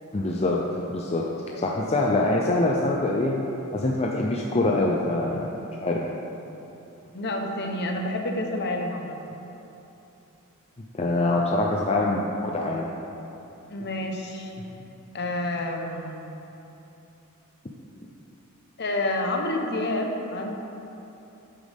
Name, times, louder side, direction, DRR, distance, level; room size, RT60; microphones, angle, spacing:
voice 1, 0.1-0.6 0.9-1.2 1.6-3.4 3.7-5.5 5.8-6.0 10.9-12.9, left 2 dB, 30° left, -2 dB, 0.6 m, -24 dB
voice 2, 7.1-9.4 13.7-14.5 15.1-16.3 18.8-20.6, left 1 dB, 50° left, 2 dB, 1.0 m, -29 dB
10.5 x 8.8 x 3.6 m, 3.0 s
head